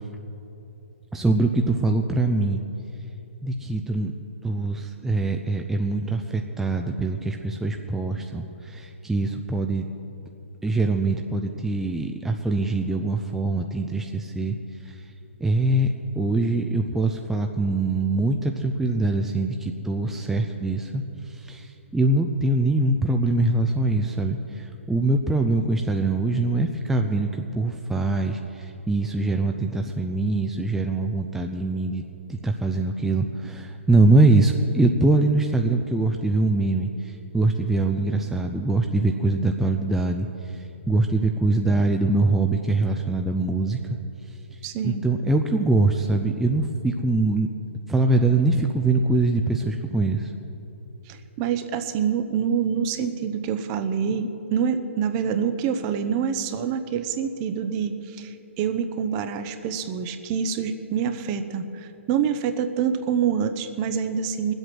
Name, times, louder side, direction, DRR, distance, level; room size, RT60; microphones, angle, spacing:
voice 1, 1.1-2.6 3.4-4.1 4.4-9.9 10.6-14.6 14.8-15.1 15.4-32.0 32.3-44.0 44.3-44.4 44.8-47.5 47.9-50.3, right 2 dB, 5° right, 3 dB, 0.5 m, -23 dB
voice 2, 44.6-45.0 51.1-64.5, right 7 dB, 30° right, 9 dB, 0.8 m, -26 dB
20.5 x 8.0 x 6.1 m, 3.0 s
figure-of-eight pair, 130°, 7 cm